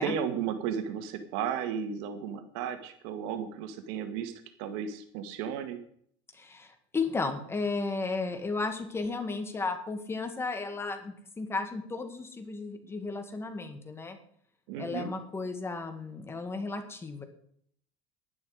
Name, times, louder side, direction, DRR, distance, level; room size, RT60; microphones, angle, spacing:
voice 1, 0.0-4.3 4.6-5.8 14.7-15.1, right 8 dB, 75° right, 9 dB, 1.8 m, -34 dB
voice 2, 6.3-14.2 14.8-17.2, left 3 dB, 15° left, 7 dB, 1.9 m, -34 dB
12.0 x 11.0 x 5.0 m, 0.63 s
supercardioid pair, 125°, 14 cm